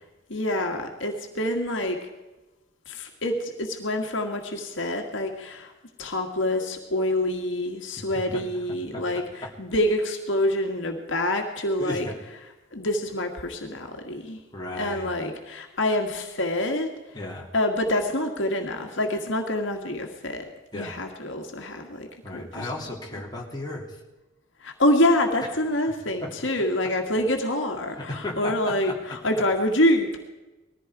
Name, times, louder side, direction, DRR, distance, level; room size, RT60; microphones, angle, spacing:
voice 1, 0.3-2.0 2.9-5.7 6.0-12.1 12.7-14.4 14.7-17.2 17.5-20.5 20.7-22.7 24.6-30.3, left 1 dB, 70° left, 3 dB, 1.9 m, -26 dB
voice 2, 11.8-12.2 14.5-15.1 17.1-17.5 20.7-20.9 22.2-23.9 26.2-26.3 28.0-28.8, left 1 dB, 20° left, -2 dB, 2.9 m, -34 dB
20.0 x 15.0 x 4.8 m, 1.1 s
head